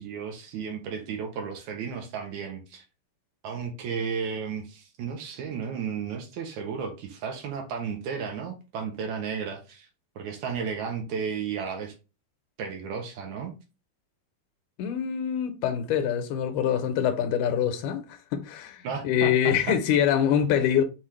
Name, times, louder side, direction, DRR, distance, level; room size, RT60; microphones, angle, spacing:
voice 1, 0.0-2.8 3.4-9.9 10.2-11.9 12.6-13.5 18.8-19.8, right 6 dB, 75° right, 1.9 m, -33 dB
voice 2, 14.8-20.8, left 9 dB, 80° left, 2.0 m, -25 dB
5.7 x 2.4 x 3.2 m
omnidirectional pair, 3.7 m